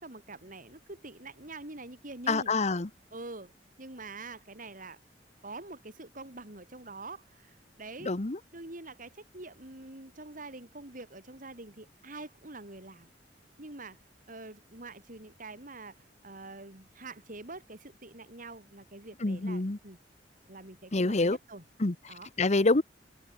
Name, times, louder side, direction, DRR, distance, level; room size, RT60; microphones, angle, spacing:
voice 1, 0.0-2.5 3.1-3.5 3.8-5.0 5.4-8.2 8.5-13.1 13.6-14.0 14.3-20.0 20.5-21.6 22.1-22.3, right 2 dB, 50° right, 4.4 m, -45 dB
voice 2, 2.3-2.9 8.0-8.4 19.2-19.8 20.9-21.4 21.8-21.9 22.4-22.8, left 2 dB, 40° left, 1.0 m, -26 dB
head